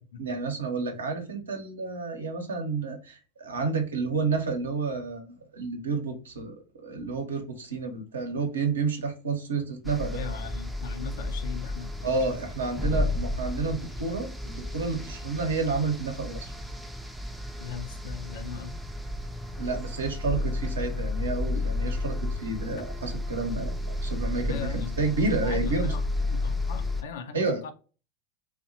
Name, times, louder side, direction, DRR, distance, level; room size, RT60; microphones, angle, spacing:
voice 1, 0.2-6.5 6.8-10.2 12.0-16.5 19.6-25.9 27.3-27.6, right 4 dB, 80° right, 0.7 m, -30 dB
sound 1, 9.8-27.0, left 2 dB, 5° right, 0.4 m, -32 dB
voice 2, 10.1-12.5 17.6-18.7 24.5-27.7, left 7 dB, 70° left, 0.4 m, -39 dB
2.7 x 2.1 x 2.6 m
hypercardioid pair, 85°, 0 cm